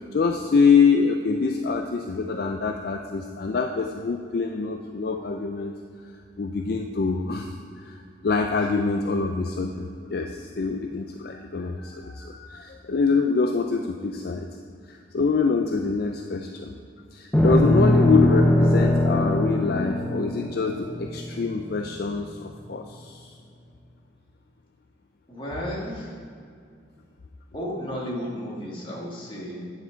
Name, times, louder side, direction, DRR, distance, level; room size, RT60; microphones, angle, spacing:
voice 1, 0.1-5.7 6.4-8.0 8.2-14.5 14.9-16.7 17.1-23.3, left 4 dB, 50° left, 4 dB, 0.4 m, -25 dB
sound 1, 17.3-21.8, left 1 dB, 10° left, 0.6 m, -21 dB
voice 2, 25.3-26.2 27.5-29.7, equal, 25° left, -4 dB, 1.8 m, -33 dB
9.3 x 6.1 x 4.5 m, 2.3 s
head